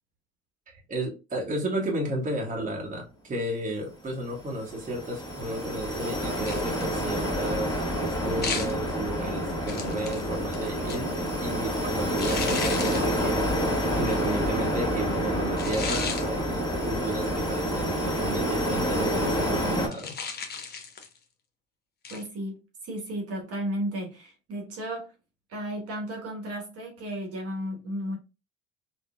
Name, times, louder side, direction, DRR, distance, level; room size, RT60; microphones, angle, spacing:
voice 1, 0.9-11.1 11.4-13.5 13.9-20.2, right 1 dB, 25° right, 1.0 m, -33 dB
sound 1, 4.2-19.9, equal, 10° left, 1.5 m, -28 dB
sound 2, 6.5-6.9 8.4-8.8 9.7-11.2 12.2-13.1 14.1-14.3 15.6-16.3 19.9-21.2 22.0-22.3, left 5 dB, 30° left, 0.7 m, -34 dB
voice 2, 22.1-25.1 25.5-28.2, equal, 45° right, 1.1 m, -34 dB
3.6 x 2.2 x 2.2 m
hypercardioid pair, 70°, 35 cm